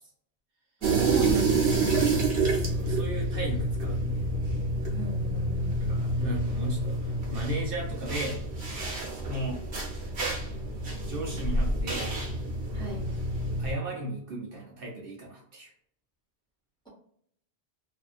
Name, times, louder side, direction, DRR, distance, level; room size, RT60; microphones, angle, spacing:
voice 1, 0.8-2.1 4.9-5.8 12.7-13.1, right 3 dB, 5° left, -6 dB, 1.0 m, -38 dB
sound 1, 0.8-13.7, right 2 dB, 75° right, 1.2 m, -28 dB
voice 2, 2.4-4.3 5.8-8.4 9.2-9.7 11.1-12.1 13.6-15.7, right 1 dB, 60° right, -2 dB, 0.8 m, -36 dB
2.7 x 2.4 x 2.4 m, 0.66 s
omnidirectional pair, 1.1 m